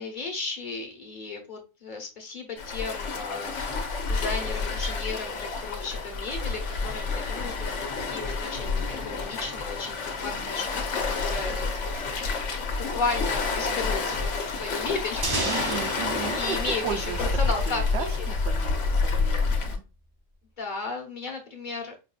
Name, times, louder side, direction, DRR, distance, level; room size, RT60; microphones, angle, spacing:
voice 1, 0.0-3.8 4.1-7.7 8.1-12.1 12.6-14.2 14.6-15.4 16.3-18.3 20.6-22.0, left 3 dB, 40° left, 1.1 m, -34 dB
Waves surf, 2.6-19.7, left 4 dB, 70° left, 1.1 m, -29 dB
sound 1, 15.2-18.0, right 2 dB, 30° right, 0.5 m, -33 dB
voice 2, 15.4-17.3 17.7-19.8, right 7 dB, 65° right, 0.8 m, -35 dB
5.3 x 2.6 x 2.3 m
omnidirectional pair, 1.3 m